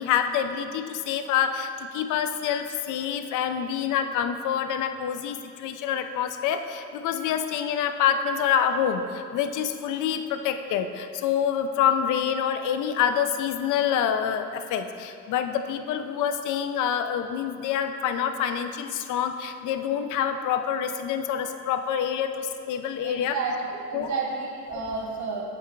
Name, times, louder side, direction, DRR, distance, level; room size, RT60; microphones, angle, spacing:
voice 1, 0.0-23.4 23.9-24.1, left 8 dB, 80° left, 8 dB, 0.5 m, -27 dB
voice 2, 23.0-25.4, right 4 dB, 65° right, -1 dB, 1.3 m, -31 dB
8.3 x 3.4 x 4.5 m, 2.5 s
cardioid pair, 90°, 30 cm